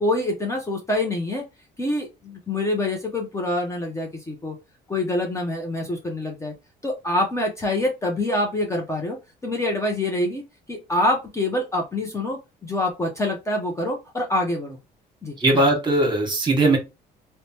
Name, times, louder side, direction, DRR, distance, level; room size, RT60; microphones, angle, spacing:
voice 1, 0.0-1.4 1.8-4.6 4.9-6.5 6.8-9.2 9.4-10.4 10.7-14.8 15.2-15.7, left 1 dB, 15° left, 0.6 m, -26 dB
voice 2, 15.4-16.8, right 2 dB, 25° right, 1.2 m, -19 dB
3.1 x 2.1 x 2.7 m
cardioid pair, 110°, 17 cm